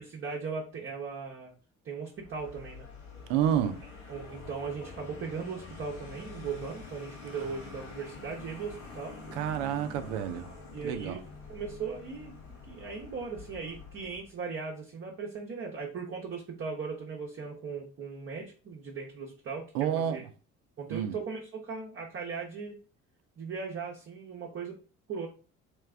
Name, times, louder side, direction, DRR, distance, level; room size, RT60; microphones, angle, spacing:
voice 1, 0.0-1.5 1.8-2.9 3.6-3.7 4.1-9.2 10.7-11.2 11.5-12.4 12.7-20.2 20.8-22.8 23.4-24.8 25.1-25.3, right 5 dB, 35° right, 0.9 m, -38 dB
Vehicle, 2.1-14.4, left 4 dB, 75° left, 1.2 m, -47 dB
voice 2, 3.3-3.8 9.3-10.5 10.8-11.2 19.7-20.2 20.9-21.2, right 9 dB, 70° right, 0.6 m, -29 dB
3.3 x 3.0 x 3.4 m
figure-of-eight pair, 50°, 39 cm